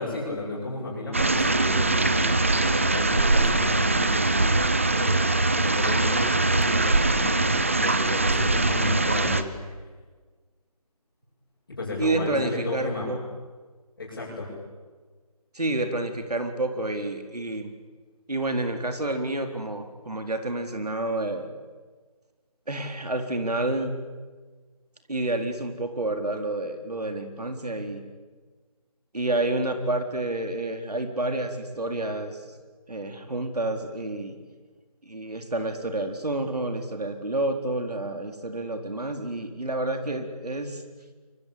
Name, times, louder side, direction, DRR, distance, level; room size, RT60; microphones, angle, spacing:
voice 1, 0.0-9.6 11.7-13.1 14.0-14.5, left 2 dB, 35° left, -7 dB, 7.7 m, -33 dB
sound 1, 1.1-9.4, right 2 dB, 20° right, 0.7 m, -22 dB
voice 2, 12.0-13.2 15.5-17.7 18.3-21.5 22.7-24.1 25.1-28.0 29.1-32.5 32.9-34.4 35.0-40.8, right 2 dB, 90° right, 6 dB, 4.1 m, -29 dB
26.0 x 23.5 x 8.7 m, 1.4 s
figure-of-eight pair, 170°, 19 cm